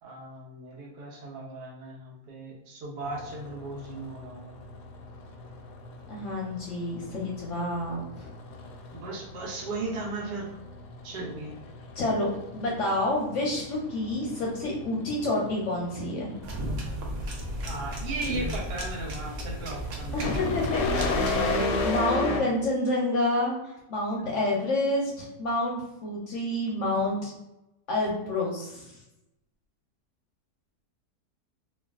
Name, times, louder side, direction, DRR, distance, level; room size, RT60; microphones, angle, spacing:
voice 1, 0.0-4.5 8.9-10.6 11.0-11.5 17.7-20.3 21.3-21.7 24.2-24.3, right 2 dB, 85° right, -1 dB, 1.3 m, -37 dB
sound 1, 3.0-22.4, left 3 dB, 85° left, 1.2 m, -36 dB
voice 2, 6.1-8.3 12.0-16.4 20.1-23.5 23.9-27.3 27.9-28.8, left 1 dB, 60° left, -3 dB, 0.8 m, -28 dB
sound 2, 16.4-21.5, right 1 dB, 65° right, 0.8 m, -34 dB
3.3 x 2.3 x 2.3 m, 0.91 s
omnidirectional pair, 1.7 m